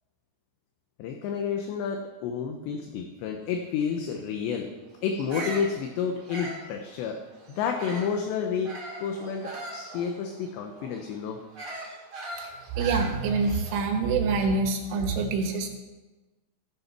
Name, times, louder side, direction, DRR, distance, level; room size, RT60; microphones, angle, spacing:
voice 1, 1.0-4.7 5.0-7.2 7.5-11.4, left 6 dB, 75° left, 4 dB, 2.8 m, -30 dB
Bird vocalization bird call bird song, 5.1-8.2 8.6-13.9, right 2 dB, 35° right, 2.7 m, -40 dB
voice 2, 12.8-15.7, right 4 dB, 75° right, 4 dB, 3.8 m, -26 dB
15.5 x 7.0 x 5.9 m, 1.2 s
omnidirectional pair, 5.8 m